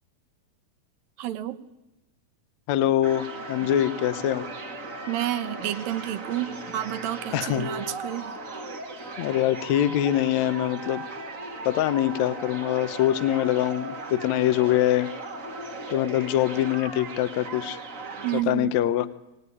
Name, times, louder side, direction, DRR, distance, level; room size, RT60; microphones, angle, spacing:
voice 1, 1.2-1.6 3.6-3.7 5.1-8.4 18.2-18.8, right 13 dB, 75° right, 11 dB, 2.7 m, -30 dB
voice 2, 2.7-4.4 7.3-7.7 9.2-11.0 11.6-15.1 15.9-17.8 18.3-19.1, left 12 dB, 65° left, 13 dB, 1.9 m, -24 dB
sound 1, 3.0-18.4, right 2 dB, 30° right, 1.7 m, -37 dB
22.5 x 19.5 x 9.8 m, 0.97 s
omnidirectional pair, 4.1 m